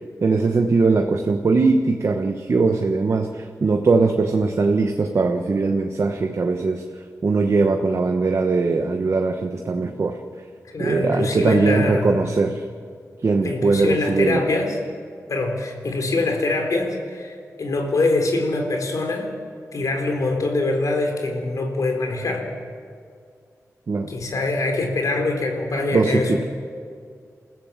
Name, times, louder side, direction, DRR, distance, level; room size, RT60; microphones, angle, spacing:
voice 1, 0.2-6.8 7.2-10.2 10.8-12.6 13.2-14.4 23.9-24.1 25.9-26.4, right 4 dB, 50° right, 4 dB, 1.1 m, -20 dB
voice 2, 10.7-12.3 13.4-14.8 15.3-19.3 19.7-22.5 24.1-26.5, left 2 dB, 70° left, 4 dB, 3.8 m, -24 dB
28.5 x 15.5 x 7.4 m, 2.2 s
wide cardioid pair, 135°, 6 cm